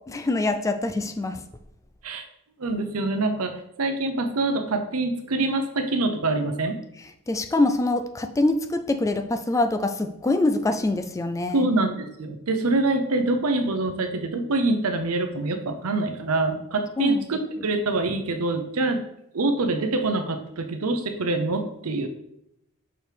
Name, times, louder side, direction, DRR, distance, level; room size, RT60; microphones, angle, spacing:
voice 1, 0.1-1.4 7.3-11.7 17.0-17.3, left 2 dB, 15° left, 8 dB, 0.3 m, -24 dB
voice 2, 2.6-6.8 11.5-19.0 19.3-22.1, right 2 dB, 75° right, 7 dB, 0.7 m, -25 dB
6.2 x 4.6 x 3.4 m, 0.80 s
head